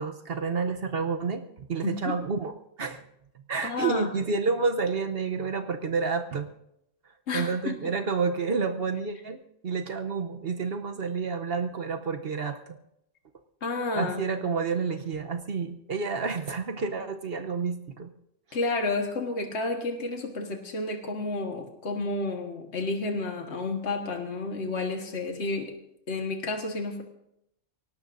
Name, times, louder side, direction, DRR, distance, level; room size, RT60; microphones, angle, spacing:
voice 1, 0.0-2.5 2.8-3.0 3.5-6.5 7.3-12.8 13.9-18.1, right 5 dB, 55° right, 7 dB, 1.0 m, -29 dB
voice 2, 1.8-2.2 3.6-4.1 7.3-7.9 13.6-14.4 18.5-25.7 26.1-27.0, left 3 dB, 65° left, 3 dB, 1.7 m, -31 dB
23.5 x 18.0 x 2.6 m, 0.79 s
omnidirectional pair, 1.2 m